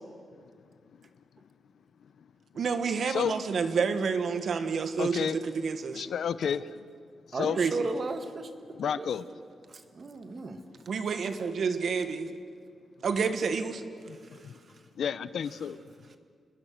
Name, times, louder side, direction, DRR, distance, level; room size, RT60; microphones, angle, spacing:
voice 1, 2.5-6.0 7.6-7.8 10.9-12.3 13.0-13.8, right 5 dB, 60° right, 8 dB, 1.6 m, -29 dB
voice 2, 5.0-5.4 5.9-6.7 7.3-7.6 8.7-9.2 14.1-14.2 14.4-14.5 15.0-15.8, left 7 dB, 70° left, 15 dB, 0.7 m, -30 dB
voice 3, 7.3-9.1 10.0-10.6, right 3 dB, 40° right, 7 dB, 1.8 m, -35 dB
28.5 x 20.5 x 6.6 m, 2.2 s
wide cardioid pair, 145°, 0 cm